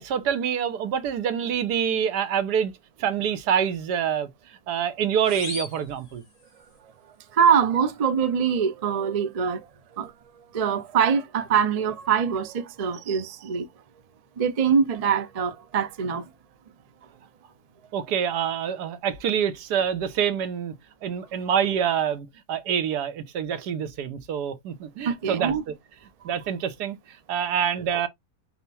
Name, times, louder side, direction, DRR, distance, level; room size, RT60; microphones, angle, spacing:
voice 1, 0.0-2.7 3.0-6.2 17.9-20.7 21.0-25.8 26.2-27.0 27.3-28.1, right 8 dB, 85° right, 1.4 m, -26 dB
sound 1, 5.2-6.8, left 4 dB, 55° left, 2.1 m, -39 dB
voice 2, 7.3-9.6 9.9-10.1 10.5-13.7 14.4-16.3 25.1-25.6, right 7 dB, 70° right, 0.3 m, -23 dB
5.7 x 2.1 x 4.1 m
omnidirectional pair, 1.7 m